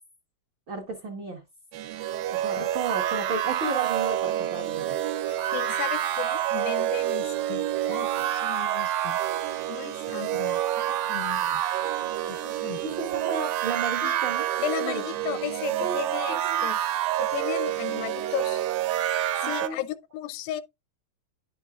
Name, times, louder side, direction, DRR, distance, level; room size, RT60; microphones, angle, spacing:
voice 1, 0.7-1.4 2.3-5.0 12.8-14.5 14.8-15.0 15.3-15.4 15.8-16.0 16.4-16.7 19.4-19.8, right 4 dB, 55° right, 1.4 m, -33 dB
sound 1, 1.7-19.7, right 12 dB, 85° right, 2.6 m, -28 dB
voice 2, 5.3-9.2 9.7-11.6 12.3-12.8 14.0-14.2 14.6-16.8 17.2-18.7 19.4-20.6, left 12 dB, 85° left, 2.3 m, -35 dB
11.0 x 5.4 x 2.4 m
omnidirectional pair, 4.0 m